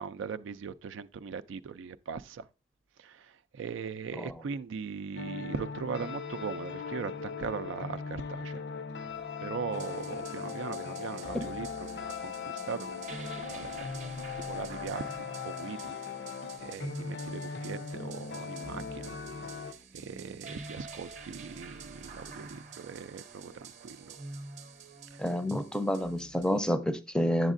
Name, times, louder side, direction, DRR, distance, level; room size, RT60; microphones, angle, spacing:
voice 1, 0.0-2.4 3.0-8.6 9.4-13.9 14.3-16.0 16.6-19.2 19.9-24.2 25.1-25.2, right 5 dB, 85° right, 0.4 m, -40 dB
sound 1, 5.2-19.7, left 5 dB, 60° left, 0.5 m, -39 dB
sound 2, 9.0-16.2, left 8 dB, 75° left, 0.9 m, -47 dB
sound 3, 9.7-26.7, right 3 dB, 40° right, 0.7 m, -47 dB
voice 2, 25.2-27.5, equal, 5° left, 0.5 m, -29 dB
8.1 x 7.2 x 2.5 m
head